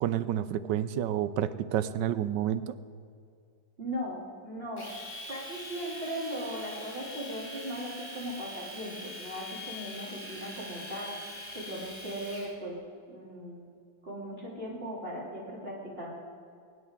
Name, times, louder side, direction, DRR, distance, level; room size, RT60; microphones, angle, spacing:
voice 1, 0.0-2.7, right 10 dB, 70° right, 13 dB, 1.1 m, -29 dB
voice 2, 3.8-4.9 5.3-11.2 11.5-12.8 13.1-13.7 14.0-16.1, equal, 30° right, -4 dB, 3.1 m, -38 dB
Domestic sounds home sounds, 4.8-12.5, left 1 dB, 15° left, 3.1 m, -43 dB
23.5 x 11.0 x 3.7 m, 2.4 s
omnidirectional pair, 2.2 m